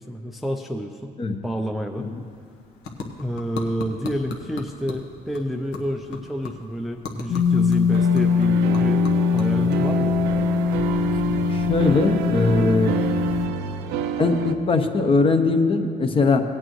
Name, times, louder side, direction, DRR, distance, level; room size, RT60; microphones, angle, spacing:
voice 1, 0.0-1.1 1.4-2.1 3.2-9.0 9.3-10.1, equal, ahead, 3 dB, 0.5 m, -29 dB
sound 1, 1.9-11.3, left 4 dB, 85° left, 1.1 m, -40 dB
sound 2, 7.3-13.5, left 6 dB, 55° left, 1.5 m, -22 dB
sound 3, 7.9-14.5, right 6 dB, 90° right, 0.6 m, -28 dB
voice 2, 11.5-12.9 14.2-16.4, left 3 dB, 30° left, 6 dB, 0.8 m, -20 dB
17.0 x 8.8 x 3.1 m, 2.3 s
cardioid pair, 110°, 17 cm